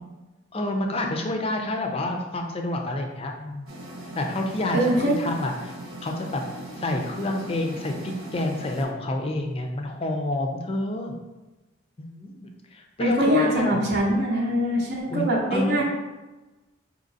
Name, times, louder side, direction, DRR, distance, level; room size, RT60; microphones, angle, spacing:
voice 1, 0.5-3.7 4.1-5.7 6.0-6.4 6.8-11.1 12.0-13.8 15.1-15.8, left 1 dB, 30° left, 2 dB, 0.4 m, -28 dB
sound 1, 3.7-8.8, right 1 dB, 75° right, 1.1 m, -39 dB
voice 2, 4.7-5.2 13.0-15.8, equal, 50° right, -3 dB, 0.7 m, -23 dB
5.1 x 2.9 x 2.7 m, 1.2 s
head